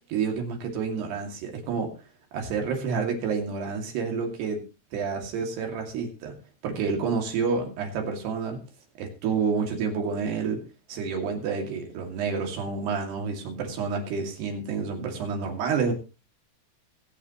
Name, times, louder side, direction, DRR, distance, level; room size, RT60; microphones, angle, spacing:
voice 1, 0.1-1.9 2.3-4.6 4.9-6.4 6.6-8.6 9.0-10.6 10.9-15.9, right 5 dB, 75° right, 3 dB, 4.6 m, -29 dB
23.5 x 8.7 x 3.1 m, 0.31 s
omnidirectional pair, 4.7 m